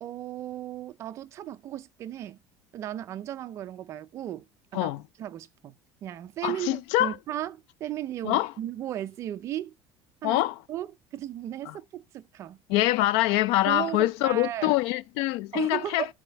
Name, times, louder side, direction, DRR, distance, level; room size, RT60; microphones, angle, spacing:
voice 1, 0.0-2.4 2.7-4.4 4.7-4.9 5.2-9.7 10.2-10.4 10.7-10.9 11.1-12.6 13.6-14.8 15.5-16.1, right 12 dB, 35° right, 0.5 m, -35 dB
voice 2, 6.4-7.2 8.2-8.5 10.2-10.6 11.7-11.8 12.7-16.1, left 16 dB, 65° left, 0.4 m, -25 dB
12.5 x 4.2 x 4.5 m
cardioid pair, 180°, 9 cm